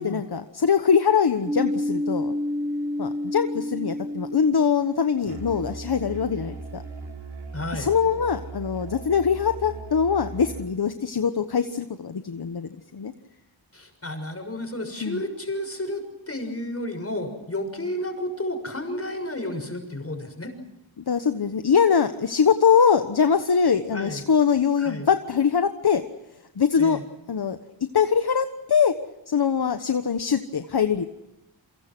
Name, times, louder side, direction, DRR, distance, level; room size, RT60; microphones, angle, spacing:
voice 1, 0.0-2.3 3.0-6.8 7.7-13.1 15.0-15.2 21.0-26.0 26.6-27.0 27.3-27.6 27.9-28.9 29.3-31.1, left 6 dB, 55° left, 8 dB, 1.3 m, -22 dB
sound 1, 1.5-7.0, left 1 dB, 5° right, 1.3 m, -30 dB
Musical instrument, 5.3-10.8, right 4 dB, 85° right, 4.4 m, -38 dB
voice 2, 7.5-7.9 13.7-20.5 23.9-24.2 24.8-25.1 26.8-27.0, left 1 dB, 30° left, 6 dB, 6.6 m, -32 dB
29.0 x 24.5 x 6.2 m, 0.94 s
wide cardioid pair, 80°, 46 cm